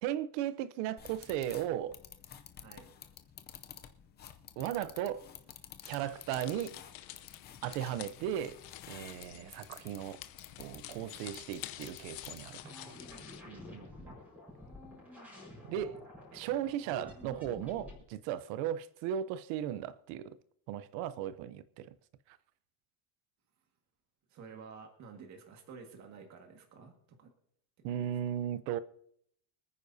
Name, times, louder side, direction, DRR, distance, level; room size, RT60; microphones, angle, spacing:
voice 1, 0.0-1.9 4.6-5.2 5.9-6.8 7.6-8.6 8.9-10.2 10.6-12.7 15.7-16.0 16.3-20.4 20.7-21.9 22.3-22.4 27.8-28.8, right 11 dB, 85° right, 0.8 m, -36 dB
sound 1, 1.0-12.6, left 9 dB, 25° left, 0.5 m, -52 dB
sound 2, 5.8-13.4, left 14 dB, 55° left, 0.8 m, -49 dB
voice 2, 9.3-9.7 13.4-14.2 24.3-27.3 27.9-28.2, right 5 dB, 40° right, 1.8 m, -52 dB
sound 3, 12.6-18.0, left 2 dB, 5° right, 4.9 m, -50 dB
25.5 x 9.6 x 2.7 m
cardioid pair, 180°, 44 cm